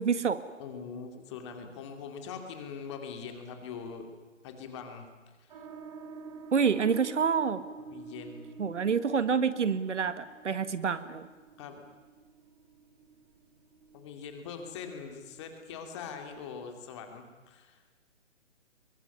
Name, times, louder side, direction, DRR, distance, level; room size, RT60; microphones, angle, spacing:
voice 1, 0.0-0.4 6.5-7.6 8.6-11.2, right 6 dB, 65° right, 13 dB, 1.7 m, -27 dB
voice 2, 0.6-4.0 4.4-5.1 5.4-5.6 7.8-8.5 11.6-11.8 13.9-17.8, left 6 dB, 20° left, 5 dB, 2.6 m, -42 dB
sound 1, 5.5-16.6, right 4 dB, 30° right, 3.6 m, -49 dB
23.0 x 23.0 x 9.7 m, 1.4 s
hypercardioid pair, 160°, 38 cm